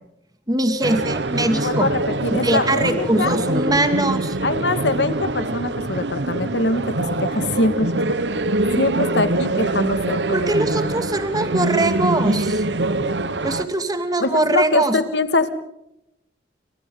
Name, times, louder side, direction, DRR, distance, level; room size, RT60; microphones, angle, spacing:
voice 1, 0.5-1.9 2.4-4.4 10.3-12.6 13.4-15.0, right 2 dB, 20° right, 7 dB, 2.4 m, -22 dB
sound 1, 0.8-13.7, right 2 dB, 70° right, 1.3 m, -24 dB
voice 2, 1.5-3.4 4.4-7.9 8.8-10.2 14.2-15.5, left 2 dB, 70° left, 11 dB, 2.0 m, -23 dB
29.5 x 25.0 x 3.9 m, 0.85 s
head